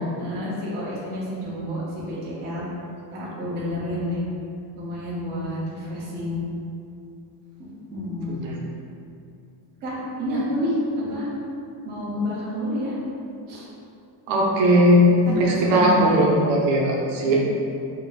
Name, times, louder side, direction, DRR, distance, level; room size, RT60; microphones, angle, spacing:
voice 1, 0.2-2.6 3.1-4.2 4.8-6.4 7.9-8.4 9.8-11.3 11.8-13.0 13.5-13.7 15.1-16.2 17.3-17.4, left 1 dB, 20° right, -9 dB, 0.5 m, -29 dB
voice 2, 14.3-15.1 15.3-17.4, equal, 60° right, -3 dB, 0.7 m, -18 dB
4.6 x 2.8 x 2.3 m, 2.6 s
cardioid pair, 180°, 50 cm